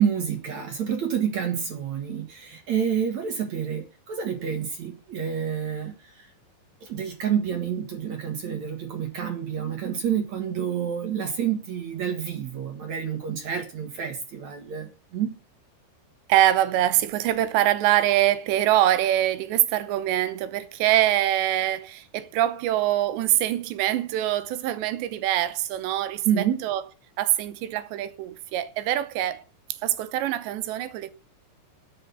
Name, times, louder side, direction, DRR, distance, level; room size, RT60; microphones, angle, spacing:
voice 1, 0.0-6.3 6.8-15.3 26.3-26.6, right 8 dB, 50° right, 2.4 m, -28 dB
voice 2, 16.3-26.8 27.2-29.4 29.8-31.1, right 13 dB, 80° right, 3.1 m, -24 dB
9.9 x 9.0 x 8.3 m
omnidirectional pair, 5.1 m